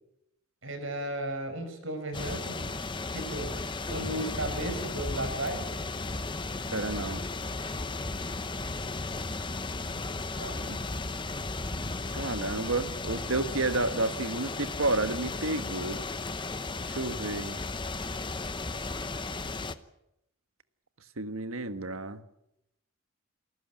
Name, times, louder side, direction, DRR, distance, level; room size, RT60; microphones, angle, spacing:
voice 1, 0.6-2.7 3.1-5.7 10.4-10.7, right 1 dB, 65° right, 7 dB, 5.4 m, -35 dB
sound 1, 2.1-19.7, left 3 dB, 20° left, 0.9 m, -35 dB
voice 2, 6.7-7.2 10.7-10.8 12.1-16.0 16.8-17.6 21.2-22.2, right 2 dB, 85° right, 10 dB, 1.5 m, -31 dB
28.0 x 14.5 x 9.1 m, 0.85 s
head